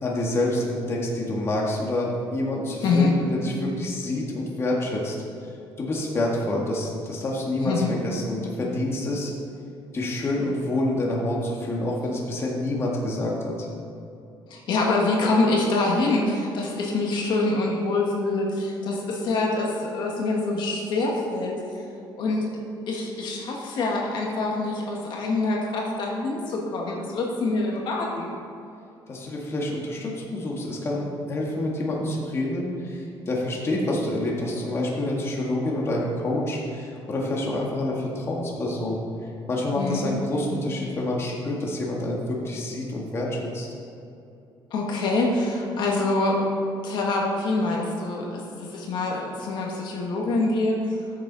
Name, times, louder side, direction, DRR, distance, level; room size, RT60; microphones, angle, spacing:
voice 1, 0.0-5.2 5.8-9.3 9.9-13.7 29.1-39.0 39.5-43.7, left 1 dB, 30° left, -3 dB, 1.7 m, -27 dB
voice 2, 2.8-3.2 7.6-7.9 14.5-21.5 22.2-22.5 22.9-28.3 39.8-40.1 44.7-46.5 46.8-50.8, left 2 dB, 65° left, -1 dB, 1.6 m, -25 dB
13.5 x 7.0 x 4.0 m, 2.6 s
cardioid pair, 140°, 9 cm